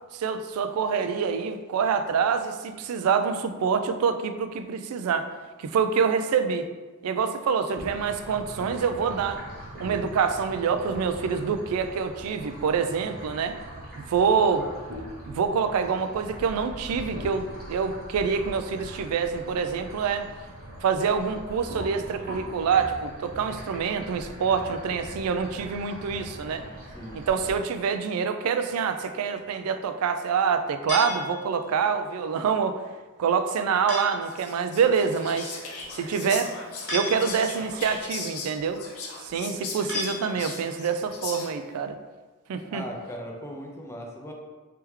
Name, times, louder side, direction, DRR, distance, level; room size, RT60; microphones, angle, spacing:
voice 1, 0.1-5.3 5.6-6.7 7.0-9.4 9.8-13.6 14.0-14.6 15.3-20.3 20.8-26.6 27.2-32.8 33.2-35.5 36.0-36.5 36.9-38.8 39.2-42.0 42.5-42.8, right 6 dB, 75° right, 8 dB, 0.3 m, -26 dB
sound 1, 7.7-27.6, right 1 dB, 45° right, 1.0 m, -41 dB
voice 2, 26.9-27.2 42.7-44.3, equal, 10° left, 0 dB, 0.5 m, -38 dB
sound 2, 30.9-31.8 33.9-34.4 36.9-37.7 39.9-40.8, left 1 dB, 50° left, 1.0 m, -34 dB
Whispering, 34.2-41.7, left 4 dB, 80° left, 0.7 m, -38 dB
3.3 x 3.3 x 3.1 m, 1.3 s
head